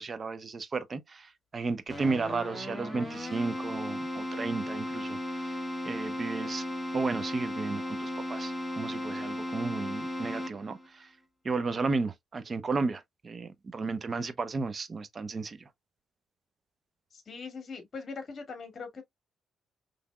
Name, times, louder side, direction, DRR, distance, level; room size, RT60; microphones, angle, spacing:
voice 1, 0.0-5.6 5.8-6.6 6.9-11.1 11.4-15.7, right 4 dB, 35° right, 0.8 m, -33 dB
Keyboard (musical), 1.9-10.9, left 1 dB, ahead, 1.8 m, -36 dB
voice 2, 17.1-19.0, left 4 dB, 40° left, 2.2 m, -41 dB
5.8 x 3.4 x 2.3 m
cardioid pair, 90°, 0 cm